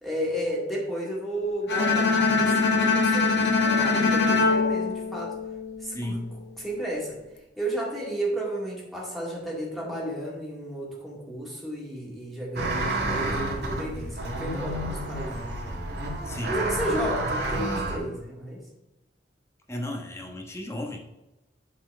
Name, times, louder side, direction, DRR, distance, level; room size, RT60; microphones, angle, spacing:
voice 1, 0.0-5.4 5.8-6.2 6.6-7.2 7.6-15.4 16.5-18.6, right 1 dB, ahead, -4 dB, 2.0 m, -32 dB
Bowed string instrument, 1.7-5.8, left 4 dB, 65° left, 1.3 m, -23 dB
voice 2, 5.9-6.4 16.2-16.6 19.7-21.0, left 1 dB, 15° left, 2 dB, 1.2 m, -34 dB
sound 1, 12.6-18.0, right 1 dB, 70° right, 1.7 m, -30 dB
8.1 x 4.4 x 5.3 m, 0.99 s
head